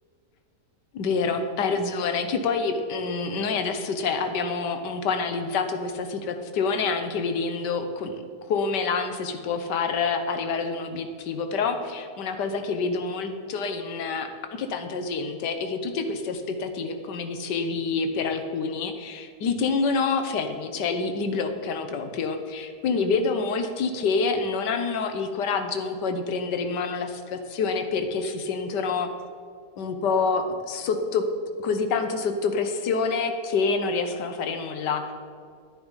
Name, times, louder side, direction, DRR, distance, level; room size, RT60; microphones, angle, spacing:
voice 1, 0.9-8.1 8.5-14.3 14.6-29.1 29.8-31.2 31.6-35.1, left 4 dB, 80° left, 7 dB, 1.5 m, -27 dB
10.5 x 9.4 x 5.2 m, 2.3 s
omnidirectional pair, 1.8 m